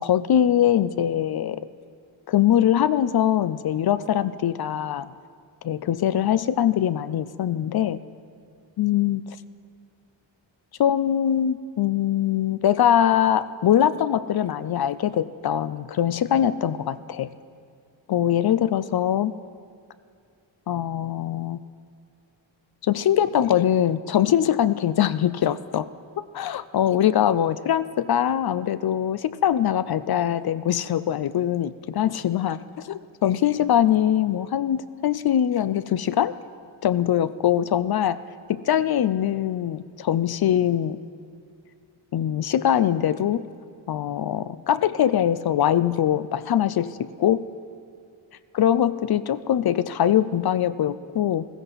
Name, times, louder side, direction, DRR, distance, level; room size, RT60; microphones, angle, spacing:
voice 1, 0.0-1.7 2.3-5.1 5.6-8.0 8.8-9.4 10.8-17.3 18.1-19.3 20.7-21.6 22.8-25.9 26.3-36.4 36.8-38.2 38.5-41.0 42.1-43.4 43.9-47.5 48.5-51.5, left 10 dB, 55° left, 15 dB, 0.5 m, -22 dB
15.0 x 15.0 x 4.1 m, 2.3 s
cardioid pair, 80°, 46 cm